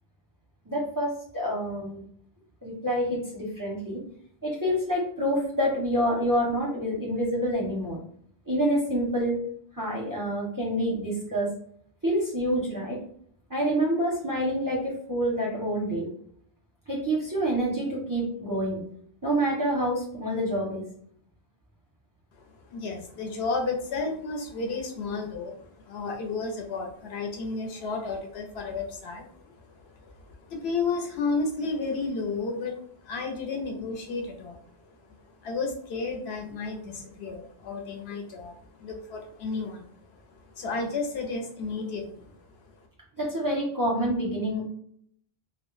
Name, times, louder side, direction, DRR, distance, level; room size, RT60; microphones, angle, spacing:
voice 1, 0.7-2.0 2.6-4.0 4.4-8.0 8.5-9.4 9.8-11.5 12.0-13.0 13.5-16.1 16.9-18.8 19.2-20.8 43.2-44.6, equal, 25° right, -4 dB, 0.5 m, -27 dB
voice 2, 22.4-42.8, left 4 dB, 75° left, 2 dB, 0.8 m, -33 dB
2.1 x 2.1 x 3.0 m, 0.62 s
omnidirectional pair, 1.1 m